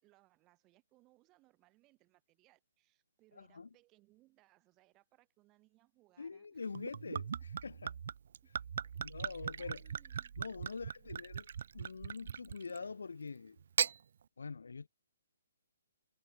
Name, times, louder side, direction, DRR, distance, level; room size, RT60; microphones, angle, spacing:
voice 1, 0.0-6.9 7.4-7.5 8.4-8.5 9.0-11.3, right 20 dB, 20° right, 2.8 m, -70 dB
voice 2, 3.4-3.7 6.2-7.2 7.6-7.9 9.0-9.8 10.4-11.5 11.7-13.6 14.4-14.9, left 4 dB, 90° left, 0.3 m, -44 dB
Gurgling / Chink clink / Liquid, 6.7-12.9 13.6-14.0, right 7 dB, 60° right, 0.4 m, -39 dB
hypercardioid pair, 155°, 0 cm